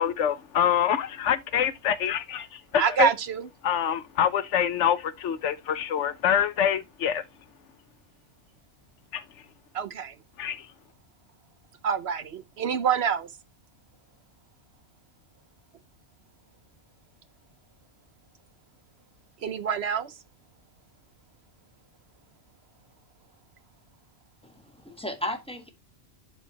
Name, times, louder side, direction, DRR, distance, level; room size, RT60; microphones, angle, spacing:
voice 1, 0.0-3.1 3.6-7.2 9.1-9.2 10.4-10.7, left 9 dB, 80° left, 1.0 m, -25 dB
voice 2, 2.8-3.5 9.7-10.1 11.8-13.3 19.4-20.2, right 8 dB, 65° right, 1.0 m, -26 dB
voice 3, 24.4-25.7, left 1 dB, 5° left, 1.2 m, -35 dB
11.5 x 4.5 x 2.9 m
omnidirectional pair, 1.2 m